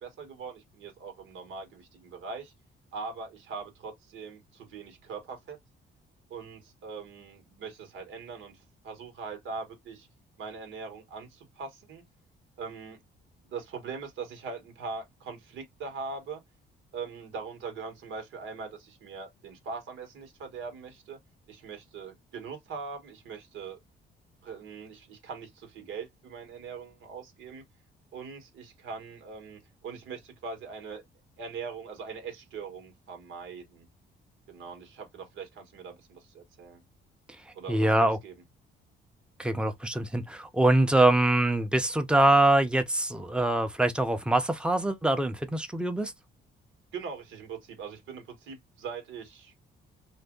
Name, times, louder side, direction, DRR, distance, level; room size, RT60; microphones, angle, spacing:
voice 1, 0.0-2.5 2.9-5.6 6.3-10.1 10.4-12.0 12.6-13.0 13.5-16.4 16.9-21.2 21.5-23.8 24.4-27.6 28.1-31.0 31.4-33.9 34.5-36.8 37.5-37.9 38.2-38.3 46.9-49.5, right 5 dB, 85° right, 1.4 m, -41 dB
voice 2, 37.7-38.2 39.4-46.1, right 1 dB, 5° right, 0.7 m, -24 dB
2.8 x 2.5 x 3.7 m
cardioid pair, 90°, 20 cm